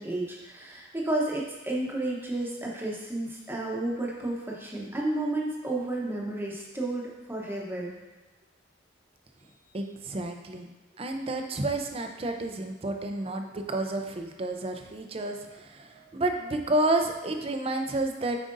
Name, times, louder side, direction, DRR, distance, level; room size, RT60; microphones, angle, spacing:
voice 1, 0.0-7.9 15.3-15.6 15.9-16.1, right 2 dB, 10° right, -3 dB, 0.9 m, -32 dB
voice 2, 9.7-10.7 11.0-18.5, right 2 dB, 30° right, 5 dB, 0.5 m, -30 dB
7.5 x 5.0 x 2.6 m, 1.1 s
head